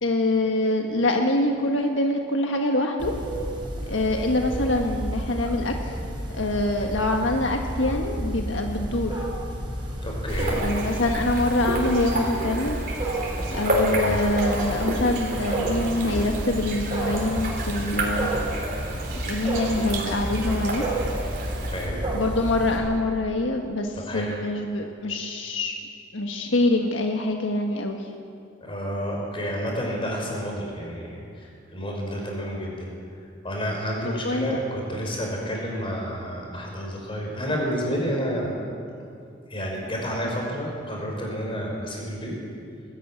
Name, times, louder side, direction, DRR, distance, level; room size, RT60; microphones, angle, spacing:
voice 1, 0.0-3.1 3.8-5.7 6.3-9.3 10.6-12.8 13.5-18.3 19.2-20.8 22.1-25.7 26.1-28.1 34.2-34.5, left 2 dB, 85° left, 3 dB, 1.5 m, -25 dB
Wild animals, 3.0-22.8, right 1 dB, 25° right, 4.2 m, -30 dB
voice 2, 10.0-10.6 13.9-14.2 21.7-22.0 24.1-24.3 28.6-31.5 31.7-32.9 33.4-38.5 39.5-42.3, equal, 30° left, -1 dB, 5.5 m, -30 dB
sound 1, 10.3-21.9, right 1 dB, 50° right, 3.9 m, -31 dB
20.5 x 14.0 x 9.3 m, 2.5 s
head